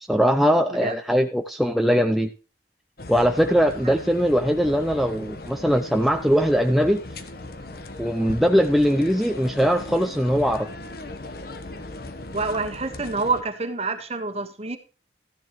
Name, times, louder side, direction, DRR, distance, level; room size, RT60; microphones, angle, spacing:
voice 1, 0.1-2.3 3.1-7.0 8.0-10.7, equal, ahead, 5 dB, 0.5 m, -21 dB
sound 1, 3.0-13.4, left 2 dB, 55° left, 1.1 m, -38 dB
voice 2, 12.3-14.8, right 3 dB, 35° right, 8 dB, 1.3 m, -27 dB
14.0 x 10.5 x 3.1 m, 0.35 s
head